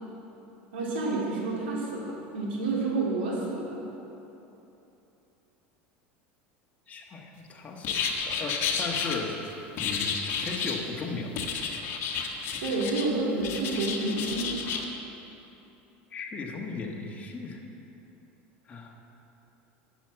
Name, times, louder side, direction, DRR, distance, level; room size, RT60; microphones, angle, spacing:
voice 1, 0.7-3.8 12.6-14.5, right 3 dB, 90° right, -4 dB, 2.6 m, -29 dB
voice 2, 6.9-8.0 8.3-9.3 9.8-10.1 10.4-11.3 16.1-17.6 18.7-18.9, left 4 dB, 25° left, -1 dB, 1.5 m, -36 dB
sound 1, 7.8-9.1 9.8-10.8 11.4-13.1 13.4-14.8, left 6 dB, 50° left, 1.2 m, -31 dB
10.0 x 6.2 x 7.4 m, 3.0 s
supercardioid pair, 110°, 5 cm